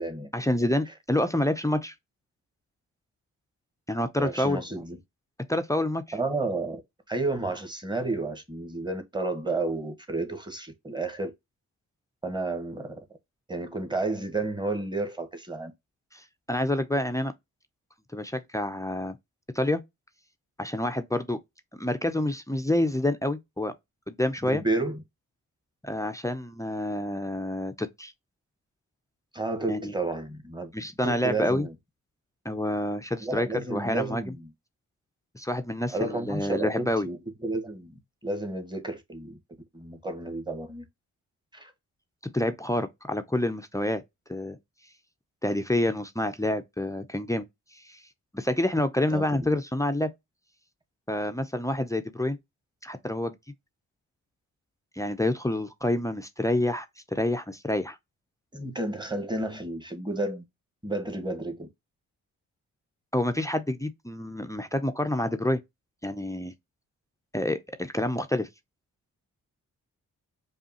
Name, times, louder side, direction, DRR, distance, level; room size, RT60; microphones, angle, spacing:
voice 1, 0.3-1.9 3.9-4.6 5.5-6.0 16.1-17.3 18.1-19.2 19.5-19.8 20.6-21.4 21.8-23.7 24.1-24.6 25.8-28.1 29.7-29.9 30.7-31.7 32.4-34.2 35.3-37.1 42.2-44.0 44.3-44.6 45.4-47.5 47.7-48.0 48.3-50.1 51.1-52.4 52.8-53.4 55.0-58.0 63.1-65.6 66.0-66.5 67.3-68.5, left 1 dB, 10° left, 0.6 m, -28 dB
voice 2, 4.2-5.0 6.1-6.8 7.1-11.3 12.2-13.0 13.5-15.7 24.4-25.0 29.3-30.7 31.0-31.7 33.2-34.5 35.9-39.4 39.7-40.8 41.5-41.7 49.1-49.5 58.5-60.4 60.8-61.7, right 2 dB, 10° right, 1.3 m, -31 dB
5.1 x 2.4 x 2.9 m
supercardioid pair, 50°, 36 cm